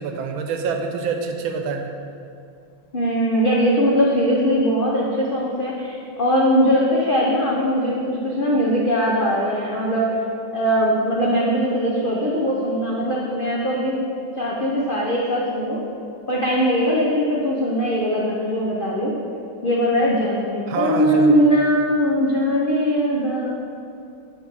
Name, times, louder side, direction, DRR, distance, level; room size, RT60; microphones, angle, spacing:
voice 1, 0.0-1.9 20.7-21.4, right 5 dB, 85° right, 4 dB, 1.5 m, -26 dB
voice 2, 2.9-10.2 10.5-14.0 14.4-15.8 16.3-19.1 19.6-23.5, equal, 80° left, -4 dB, 0.4 m, -20 dB
8.4 x 4.3 x 4.7 m, 2.5 s
omnidirectional pair, 2.1 m